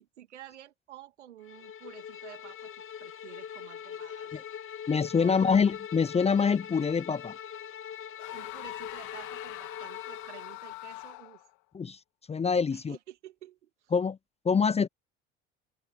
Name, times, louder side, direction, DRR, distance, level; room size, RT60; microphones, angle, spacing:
voice 1, 0.0-2.7 3.0-4.5 5.2-5.5 8.3-11.4 12.7-13.9, right 12 dB, 80° right, 2.7 m, -50 dB
Bowed string instrument, 1.4-10.6, left 9 dB, 35° left, 2.4 m, -42 dB
voice 2, 4.9-7.3 11.7-12.0 12.3-13.0 13.9-14.2 14.4-14.9, left 5 dB, 20° left, 0.7 m, -25 dB
sound 1, 8.2-11.5, left 24 dB, 60° left, 3.6 m, -43 dB
open air
hypercardioid pair, 70°, 35 cm